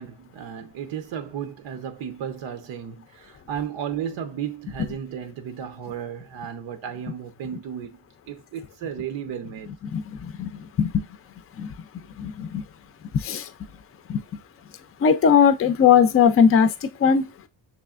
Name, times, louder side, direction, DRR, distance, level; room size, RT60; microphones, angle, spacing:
voice 1, 0.0-8.0 8.3-9.7, right 8 dB, 85° right, 0.8 m, -34 dB
voice 2, 9.9-11.1 11.6-12.6 13.1-13.5 14.1-14.2 15.0-17.3, left 7 dB, 30° left, 0.4 m, -20 dB
6.2 x 3.2 x 2.4 m
cardioid pair, 140°, 43 cm